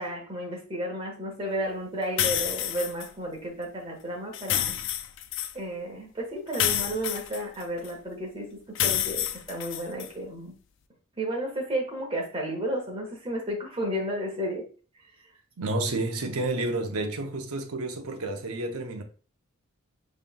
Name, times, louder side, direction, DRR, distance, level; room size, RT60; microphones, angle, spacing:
voice 1, 0.0-4.8 5.5-10.5 11.2-14.7, right 1 dB, 25° right, 1.2 m, -32 dB
sound 1, 2.2-3.1 4.3-5.5 6.5-7.9 8.8-10.1, left 11 dB, 55° left, 0.3 m, -28 dB
voice 2, 15.6-19.0, right 2 dB, 80° right, 0.8 m, -30 dB
5.4 x 3.2 x 2.2 m
head